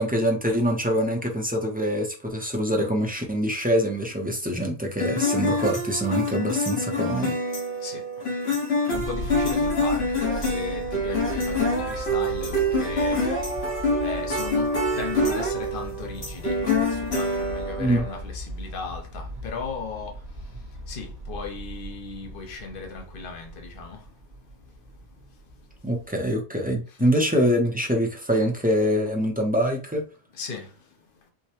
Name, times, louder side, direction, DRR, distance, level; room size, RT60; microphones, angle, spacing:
voice 1, 0.0-7.4 17.8-18.0 25.8-30.0, equal, 10° right, 0.5 m, -24 dB
sound 1, 5.0-18.2, left 1 dB, 75° left, 1.6 m, -26 dB
voice 2, 7.8-8.4 8.8-20.5 20.9-24.1 25.1-25.2 26.9-27.0 30.3-30.9, left 5 dB, 60° left, 0.9 m, -37 dB
sound 2, 8.9-26.4, equal, 80° right, 1.2 m, -39 dB
4.7 x 2.1 x 2.8 m
omnidirectional pair, 1.1 m